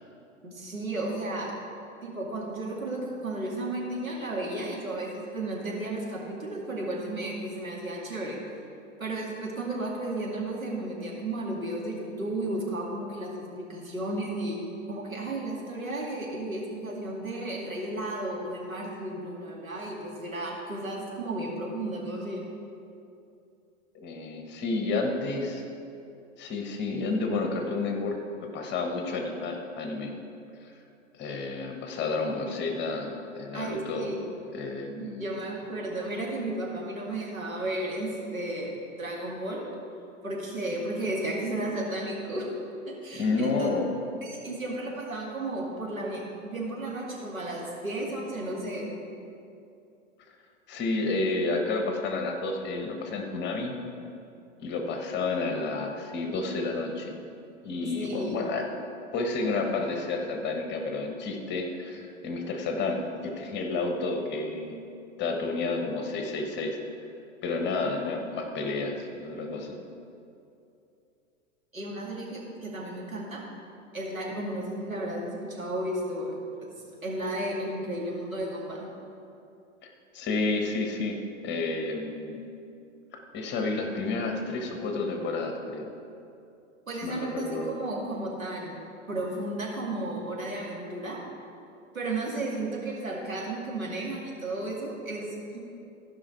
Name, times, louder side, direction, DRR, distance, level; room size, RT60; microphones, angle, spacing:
voice 1, 0.4-1.5 2.0-8.4 9.0-14.6 14.9-22.5 33.5-34.1 35.0-39.7 40.2-42.5 42.8-43.7 44.2-48.9 57.9-58.4 71.7-73.4 73.9-76.7 77.0-78.9 86.9-88.8 89.1-91.2 91.9-95.6, right 1 dB, 90° right, -3 dB, 2.3 m, -33 dB
voice 2, 23.9-25.6 26.4-30.1 30.6-30.8 31.2-34.1 34.5-35.3 43.1-43.9 50.3-50.4 50.7-53.7 54.6-57.1 57.6-58.7 59.1-64.8 65.2-66.8 67.4-69.8 80.1-82.4 83.1-85.9 87.0-87.7, left 3 dB, 25° left, 3 dB, 1.3 m, -30 dB
15.5 x 5.4 x 4.7 m, 2.6 s
figure-of-eight pair, 100°, 40 cm